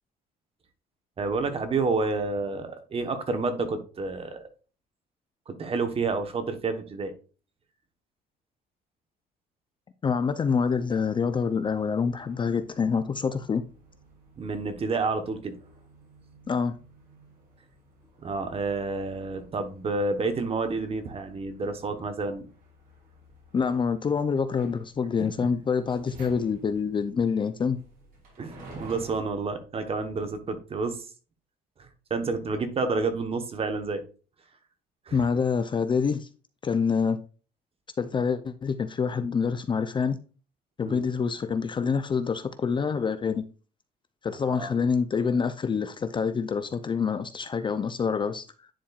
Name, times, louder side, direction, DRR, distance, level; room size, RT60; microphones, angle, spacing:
voice 1, 1.2-4.4 5.5-7.1 14.4-15.5 18.2-22.5 28.4-31.0 31.8-34.0 35.1-35.2 40.8-41.0 44.4-44.8, right 3 dB, 35° right, 1.2 m, -29 dB
voice 2, 10.0-13.6 16.5-16.7 23.5-27.8 35.1-36.3 36.6-37.2 38.0-40.2 40.8-43.4 44.2-48.4, left 6 dB, 30° left, 0.5 m, -26 dB
sound 1, 10.3-29.2, right 1 dB, 55° right, 2.8 m, -53 dB
10.0 x 4.4 x 2.4 m
cardioid pair, 110°, 17 cm